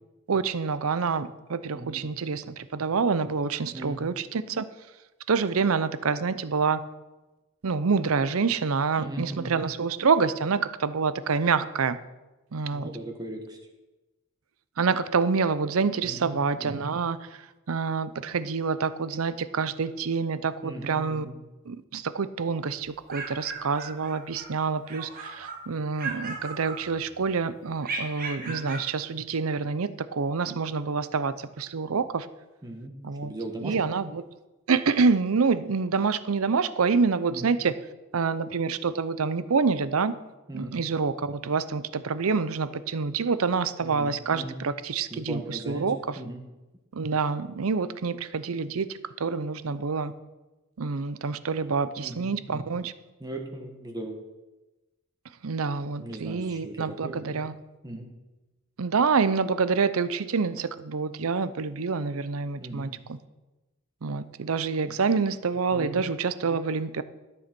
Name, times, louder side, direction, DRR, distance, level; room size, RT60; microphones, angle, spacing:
voice 1, 0.3-4.7 5.3-6.8 7.6-12.0 12.5-12.9 14.8-21.3 21.7-32.3 33.0-33.3 33.6-34.2 34.7-37.7 38.1-40.1 40.5-46.2 46.9-50.1 50.8-52.9 55.4-57.5 58.8-63.2 64.0-67.0, right 5 dB, 75° right, 14 dB, 0.6 m, -27 dB
voice 2, 9.0-9.6 12.7-13.6 16.0-16.8 20.6-21.4 28.4-28.6 32.6-32.9 33.2-33.7 37.3-37.5 40.5-40.8 43.8-44.6 45.1-45.9 46.2-46.4 52.0-52.7 53.2-54.2 56.0-57.3 57.8-58.1 62.6-62.9 64.8-65.0 65.7-66.0, right 1 dB, 20° right, 2 dB, 1.3 m, -38 dB
sound 1, 22.8-24.5 24.8-25.6 26.0-27.2 27.8-28.9, right 4 dB, 45° right, 1.5 m, -37 dB
12.5 x 7.1 x 6.0 m, 1.1 s
head